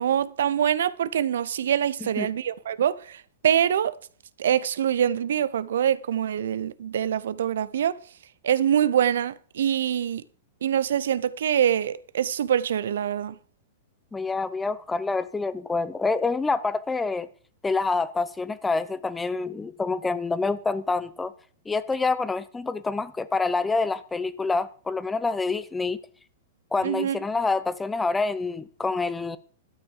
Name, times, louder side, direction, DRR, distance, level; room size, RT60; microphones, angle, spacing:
voice 1, 0.0-3.9 4.4-8.0 8.4-10.2 10.6-13.3 26.8-27.2, right 9 dB, 70° right, 0.6 m, -24 dB
voice 2, 14.1-17.3 17.6-21.3 21.7-26.0 26.7-29.4, left 3 dB, 10° left, 0.8 m, -27 dB
12.5 x 8.7 x 4.8 m
hypercardioid pair, 105°, 0 cm